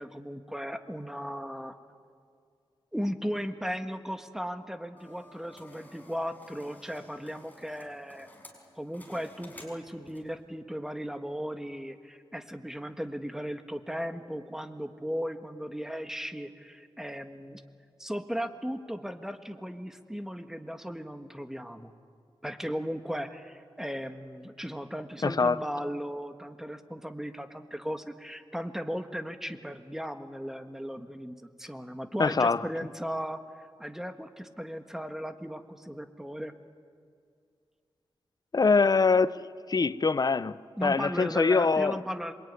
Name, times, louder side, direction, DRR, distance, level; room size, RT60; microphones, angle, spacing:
voice 1, 0.0-1.8 2.9-8.3 8.8-17.6 18.0-21.9 22.4-36.5 40.8-42.3, equal, 5° right, 1.6 m, -36 dB
sound 1, 5.0-10.4, left 1 dB, 15° left, 5.3 m, -53 dB
voice 2, 25.2-25.6 32.2-32.6 38.5-39.4 39.7-42.0, left 4 dB, 40° left, 0.7 m, -24 dB
26.5 x 22.5 x 9.6 m
wide cardioid pair, 90°, 10 cm